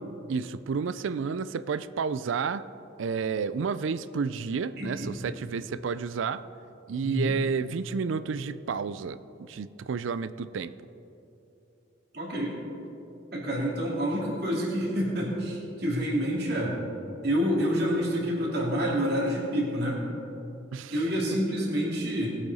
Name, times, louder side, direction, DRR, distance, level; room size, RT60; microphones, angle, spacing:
voice 1, 0.3-2.6 3.0-6.4 6.9-10.7 20.7-21.0, right 5 dB, 80° right, 14 dB, 0.4 m, -31 dB
voice 2, 4.8-5.1 7.0-7.3 12.1-12.5 13.3-16.8 17.2-20.0 20.9-22.4, equal, 55° right, -4 dB, 2.7 m, -28 dB
19.5 x 8.4 x 4.1 m, 3.0 s
head